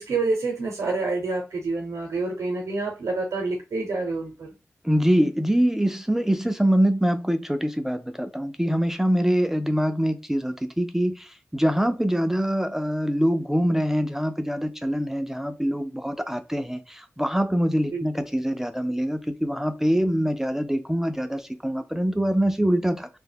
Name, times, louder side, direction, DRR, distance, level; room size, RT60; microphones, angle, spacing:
voice 1, 0.0-4.5 17.9-18.1, right 3 dB, 90° right, 0.6 m, -27 dB
voice 2, 4.8-23.1, equal, 5° right, 0.3 m, -24 dB
2.1 x 2.0 x 3.3 m
cardioid pair, 55°, 5 cm